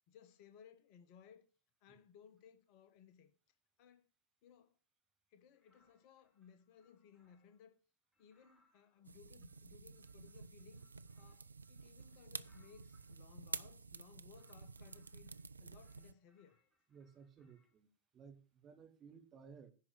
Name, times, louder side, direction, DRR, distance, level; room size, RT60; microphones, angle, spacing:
voice 1, 0.1-1.5 1.8-3.3 3.8-4.1 4.4-4.8 5.3-7.8 8.2-10.8 11.2-16.6, left 8 dB, 45° left, 1.1 m, -62 dB
sound 1, 5.5-7.7 8.1-13.2 13.9-15.5 15.8-17.8, left 2 dB, 5° left, 2.6 m, -79 dB
sound 2, 9.0-16.1, right 4 dB, 75° right, 0.4 m, -50 dB
voice 2, 16.9-17.9 18.1-19.7, right 6 dB, 30° right, 1.6 m, -58 dB
10.5 x 4.6 x 7.3 m
figure-of-eight pair, 90°, 0 cm